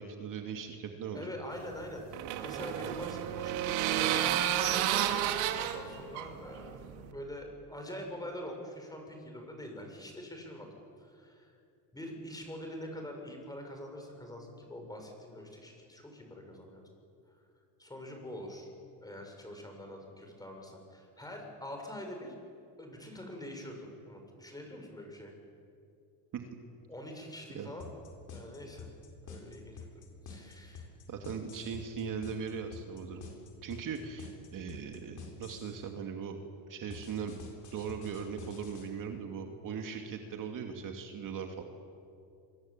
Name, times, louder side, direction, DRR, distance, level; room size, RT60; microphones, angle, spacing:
voice 1, 0.0-1.3 26.3-26.4 27.5-27.7 31.1-33.2 33.6-36.4 36.7-37.4 37.7-41.6, right 6 dB, 45° right, 4 dB, 2.6 m, -39 dB
voice 2, 1.1-5.3 5.6-10.7 11.0-11.5 11.9-16.8 17.8-18.7 19.0-22.3 22.8-25.3 26.9-27.9 28.3-28.9 29.3-30.9, left 1 dB, 10° left, 3 dB, 7.2 m, -44 dB
sound 1, 1.6-7.1, right 11 dB, 80° right, 2.4 m, -31 dB
sound 2, 27.8-35.8 36.9-38.9, left 5 dB, 40° left, 7.6 m, -47 dB
26.5 x 24.0 x 9.1 m, 2.5 s
supercardioid pair, 115°, 45 cm